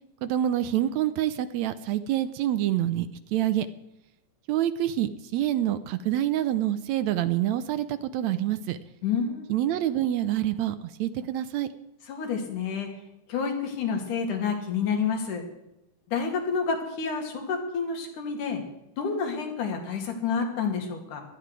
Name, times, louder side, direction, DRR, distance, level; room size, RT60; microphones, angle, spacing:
voice 1, 0.2-3.7 4.5-8.8 9.5-11.7, right 12 dB, 75° right, 12 dB, 1.8 m, -27 dB
voice 2, 9.0-9.5 12.1-12.9 13.3-15.4 16.1-18.6 19.0-21.2, left 5 dB, 85° left, 3 dB, 3.7 m, -29 dB
17.0 x 12.5 x 4.7 m, 0.91 s
omnidirectional pair, 3.5 m